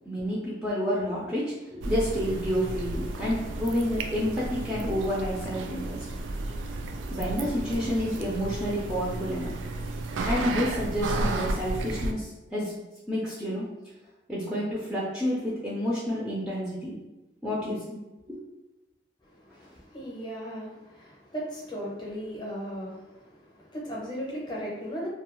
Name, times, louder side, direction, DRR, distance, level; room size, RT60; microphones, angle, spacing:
voice 1, 0.1-6.0 7.1-9.5 10.2-12.7 13.1-13.7 14.3-17.0 17.4-18.0 18.3-18.4, equal, 5° right, -7 dB, 0.4 m, -29 dB
sound 1, 1.8-12.1, right 2 dB, 80° right, 0.3 m, -33 dB
voice 2, 19.3-25.1, equal, 25° left, -5 dB, 0.7 m, -37 dB
2.3 x 2.2 x 3.0 m, 1.1 s
head